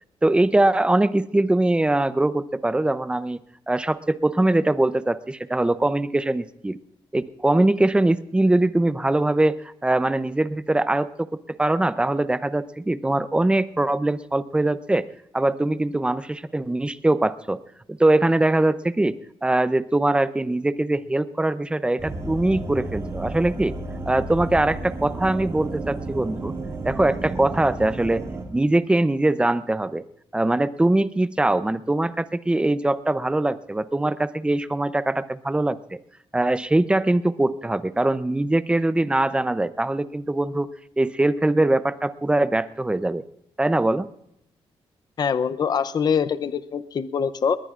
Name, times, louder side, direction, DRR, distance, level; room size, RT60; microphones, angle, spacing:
voice 1, 0.2-3.4 3.7-6.8 7.1-15.1 15.3-17.6 17.9-19.1 19.4-23.7 24.1-26.5 26.8-30.0 30.3-36.0 36.3-40.7 41.0-43.2 43.6-44.1, right 2 dB, 10° right, 14 dB, 0.5 m, -22 dB
sound 1, 22.0-28.4, right 2 dB, 30° right, 2.5 m, -32 dB
voice 2, 45.2-47.6, left 6 dB, 45° left, 14 dB, 0.6 m, -24 dB
20.5 x 19.5 x 2.5 m, 0.79 s
cardioid pair, 115°, 10 cm